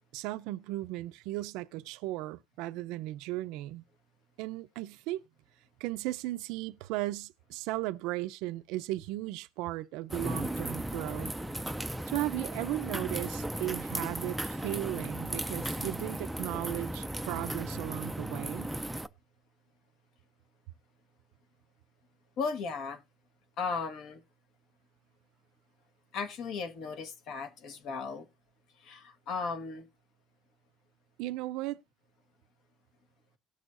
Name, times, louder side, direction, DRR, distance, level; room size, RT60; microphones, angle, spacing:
voice 1, 0.1-3.8 4.4-5.2 5.8-11.3 12.1-18.7 31.2-31.8, right 16 dB, 85° right, 0.5 m, -36 dB
sound 1, 10.1-19.1, right 1 dB, 5° right, 0.4 m, -36 dB
voice 2, 22.4-23.0 23.6-24.2 26.1-28.3 28.8-29.9, left 5 dB, 55° left, 1.5 m, -36 dB
18.5 x 6.4 x 2.6 m
cardioid pair, 170°, 0 cm